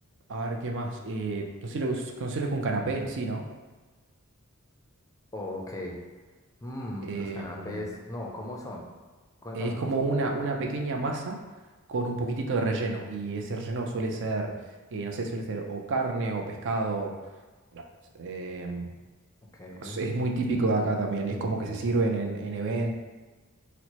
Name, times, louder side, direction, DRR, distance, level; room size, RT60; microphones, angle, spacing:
voice 1, 0.3-3.4 7.0-7.8 9.5-11.4 11.9-14.5 14.9-17.1 17.7-17.8 18.1-18.9 19.8-22.9, right 3 dB, 55° right, 2 dB, 0.4 m, -30 dB
voice 2, 5.3-6.0 6.6-8.8 9.4-9.9 19.5-20.0, left 1 dB, 15° left, -1 dB, 0.4 m, -37 dB
4.4 x 2.0 x 2.9 m, 1.3 s
head